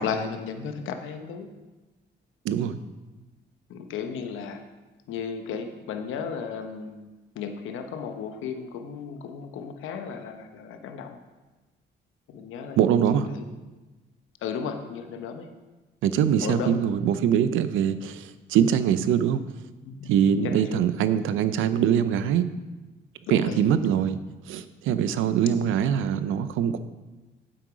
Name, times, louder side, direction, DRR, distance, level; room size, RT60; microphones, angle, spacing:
voice 1, 0.0-1.5 3.7-4.6 5.1-7.1 7.4-11.2 12.3-12.8 13.3-13.4 14.4-15.5 16.4-16.8 19.8-20.1 20.4-20.8 23.3-23.6 25.6-25.7, left 6 dB, 85° left, 6 dB, 1.0 m, -34 dB
voice 2, 2.4-2.8 12.8-13.3 16.0-19.4 20.1-22.5 23.3-24.2 24.5-26.8, right 8 dB, 85° right, 13 dB, 0.6 m, -23 dB
8.5 x 7.8 x 5.1 m, 1.2 s
cardioid pair, 90°, 20 cm